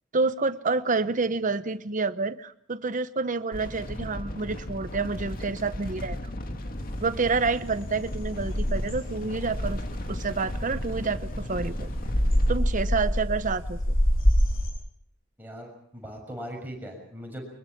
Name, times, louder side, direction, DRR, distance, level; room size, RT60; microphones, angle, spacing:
voice 1, 0.1-6.3 7.0-9.8 10.1-11.9 12.5-13.9, right 4 dB, 40° right, 13 dB, 0.9 m, -28 dB
sound 1, 3.5-12.6, left 1 dB, 45° left, 2.0 m, -36 dB
sound 2, 6.8-14.7, equal, 80° left, 6.8 m, -27 dB
voice 2, 15.4-17.4, equal, 10° right, 1 dB, 6.6 m, -39 dB
23.5 x 22.5 x 6.0 m, 0.67 s
head